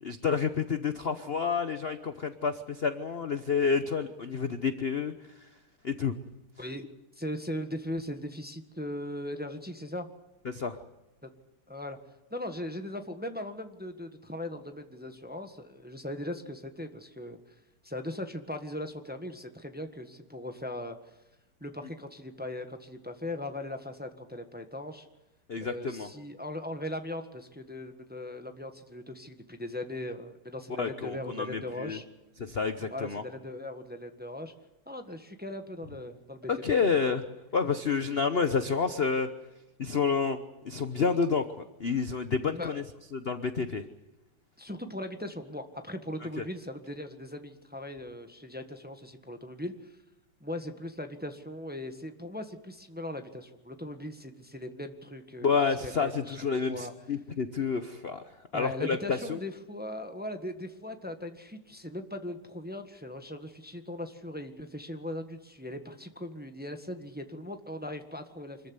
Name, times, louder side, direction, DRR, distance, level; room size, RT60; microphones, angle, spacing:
voice 1, 0.0-5.1 5.8-6.1 10.4-10.8 25.5-26.1 30.8-32.0 32.5-33.2 36.5-37.2 37.5-39.3 39.8-40.4 40.6-42.8 43.1-43.8 46.4-46.5 55.4-58.2 58.5-59.4, left 5 dB, 45° left, 10 dB, 0.8 m, -29 dB
voice 2, 7.1-10.1 11.2-11.3 11.7-12.0 12.3-17.4 17.8-21.0 21.6-25.1 25.6-32.0 32.9-34.5 34.8-36.5 42.5-42.8 44.6-49.9 50.4-56.9 58.5-68.6, left 1 dB, 5° right, 7 dB, 1.3 m, -39 dB
25.5 x 14.5 x 9.6 m, 1.0 s
omnidirectional pair, 2.3 m